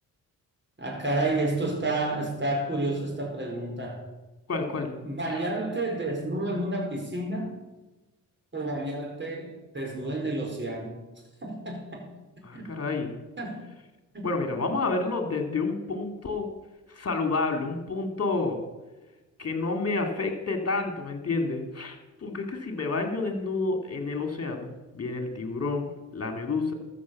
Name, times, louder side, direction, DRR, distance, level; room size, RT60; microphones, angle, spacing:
voice 1, 0.8-4.0 4.7-7.6 8.5-11.0 11.4-12.1 12.5-12.7 13.4-13.6 14.1-14.3, right 2 dB, 30° right, 0 dB, 5.1 m, -30 dB
voice 2, 4.5-4.9 5.3-5.4 12.4-13.1 14.2-16.5 16.9-18.6 19.4-26.7, left 3 dB, 40° left, 5 dB, 2.6 m, -29 dB
13.5 x 6.5 x 7.2 m, 1.1 s
hypercardioid pair, 40°, 38 cm